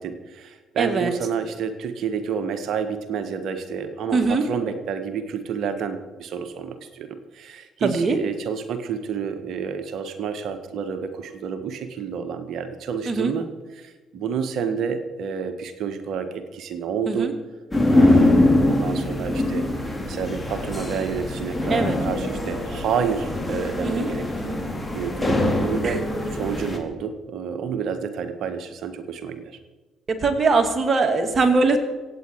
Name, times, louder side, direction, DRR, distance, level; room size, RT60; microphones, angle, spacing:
voice 1, 0.0-17.3 17.9-19.7 20.1-24.6 24.9-26.0 26.3-29.6, right 6 dB, 60° right, 9 dB, 1.4 m, -29 dB
voice 2, 0.8-1.1 4.1-4.4 7.8-8.2 13.1-13.3 17.1-17.3 21.7-22.0 23.8-24.1 25.8-26.0 30.2-31.8, right 3 dB, 40° right, 5 dB, 2.4 m, -21 dB
sound 1, 17.7-26.8, left 1 dB, 15° left, 3.0 m, -23 dB
25.5 x 8.8 x 4.7 m, 1.3 s
figure-of-eight pair, 45°, 0 cm